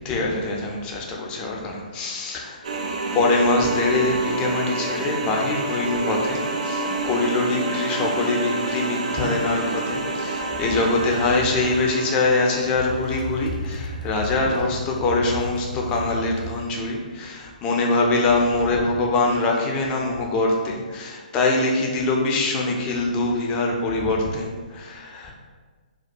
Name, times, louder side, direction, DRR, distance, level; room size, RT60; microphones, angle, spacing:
voice 1, 0.1-2.6 3.1-25.3, left 2 dB, 20° left, -1 dB, 0.3 m, -23 dB
sound 1, 2.6-13.4, right 3 dB, 60° right, 0.3 m, -28 dB
sound 2, 8.7-16.7, left 2 dB, 80° left, 0.4 m, -35 dB
2.3 x 2.1 x 2.6 m, 1.4 s
figure-of-eight pair, 130°, 5 cm